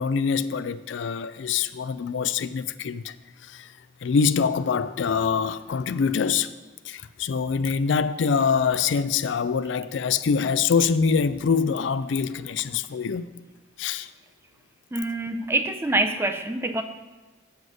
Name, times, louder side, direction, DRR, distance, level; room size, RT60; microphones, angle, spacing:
voice 1, 0.0-3.2 3.4-3.7 4.0-6.5 6.8-13.3 13.8-14.1, left 6 dB, 75° left, 0.4 m, -24 dB
voice 2, 14.9-16.8, right 2 dB, 15° right, 0.4 m, -25 dB
8.0 x 7.7 x 5.3 m
head